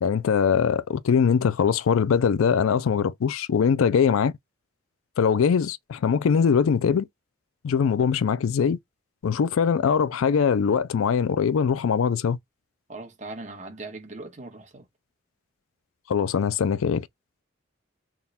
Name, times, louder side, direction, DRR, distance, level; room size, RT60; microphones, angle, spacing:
voice 1, 0.0-4.3 5.2-7.1 7.6-8.8 9.2-12.4 16.1-17.1, left 6 dB, 90° left, 0.4 m, -22 dB
voice 2, 12.9-14.8, right 2 dB, 35° right, 1.3 m, -39 dB
3.7 x 2.3 x 4.1 m
head